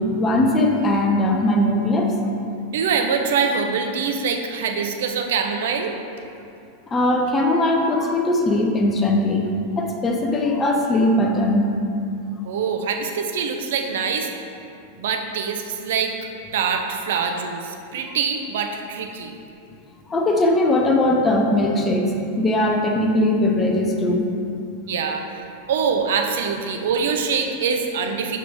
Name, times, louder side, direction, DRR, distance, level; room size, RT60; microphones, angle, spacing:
voice 1, 0.0-2.1 6.9-11.7 20.1-24.3, left 1 dB, 20° left, 1 dB, 0.8 m, -20 dB
voice 2, 2.7-5.9 12.4-14.3 15.0-16.1 16.5-19.4 24.9-25.2 25.7-28.4, right 6 dB, 55° right, 4 dB, 0.6 m, -24 dB
6.2 x 5.1 x 4.6 m, 2.6 s
figure-of-eight pair, 90°, 0 cm